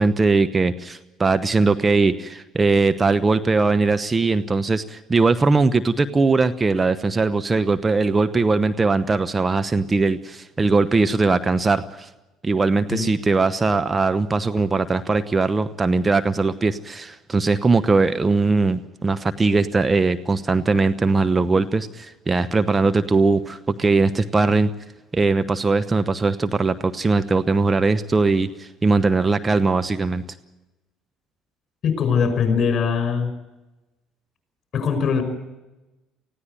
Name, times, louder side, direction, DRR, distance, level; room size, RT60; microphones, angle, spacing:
voice 1, 0.0-12.1 12.4-24.7 25.1-30.2, right 3 dB, 25° right, 11 dB, 0.9 m, -20 dB
voice 2, 31.8-33.3 34.7-35.2, left 6 dB, 45° left, 7 dB, 5.8 m, -21 dB
19.5 x 16.0 x 9.2 m, 1.0 s
hypercardioid pair, 60°, 0 cm